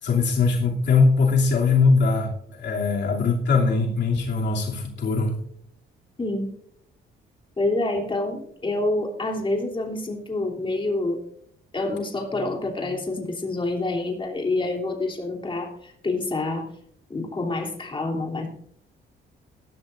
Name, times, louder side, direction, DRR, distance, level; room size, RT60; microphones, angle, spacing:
voice 1, 0.0-5.3, left 4 dB, 60° left, -1 dB, 2.8 m, -21 dB
voice 2, 6.2-6.5 7.6-11.2 11.7-16.7 17.1-18.5, left 2 dB, 25° left, 0 dB, 3.3 m, -27 dB
18.0 x 12.5 x 2.6 m, 0.69 s
cardioid pair, 90°, 20 cm